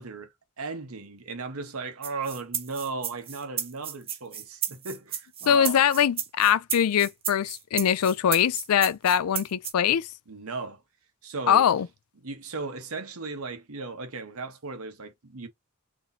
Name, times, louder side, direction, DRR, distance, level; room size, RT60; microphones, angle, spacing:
voice 1, 0.0-5.8 10.3-10.8 11.2-11.6 12.2-15.5, right 4 dB, 75° right, 1.0 m, -36 dB
sound 1, 2.0-9.7, right 9 dB, 25° right, 0.6 m, -33 dB
voice 2, 5.5-10.1 11.5-11.9, left 9 dB, 85° left, 0.4 m, -22 dB
3.1 x 2.7 x 4.0 m
head